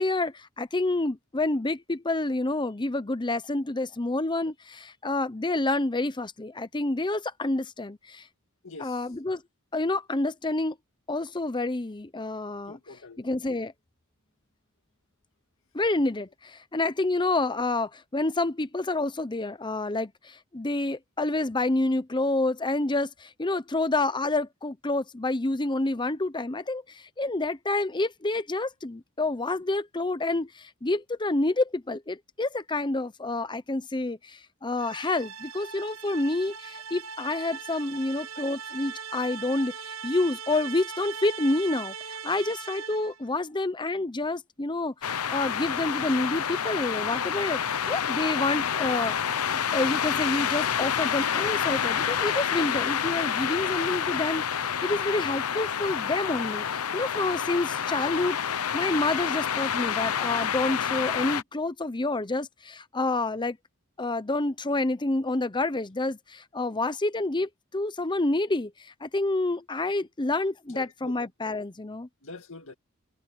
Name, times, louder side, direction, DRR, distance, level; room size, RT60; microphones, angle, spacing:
voice 1, 0.0-8.2 8.8-9.4 9.7-10.8 11.1-12.8 13.2-13.7 15.7-49.1 49.5-63.6 64.0-72.1, left 2 dB, 20° left, 0.8 m, -28 dB
voice 2, 8.6-9.0 12.7-13.3 70.7-71.2 72.2-72.7, left 3 dB, 65° left, 2.1 m, -44 dB
sound 1, 34.8-43.2, right 6 dB, 65° right, 1.1 m, -40 dB
sound 2, 45.0-61.4, left 8 dB, 90° left, 0.8 m, -28 dB
head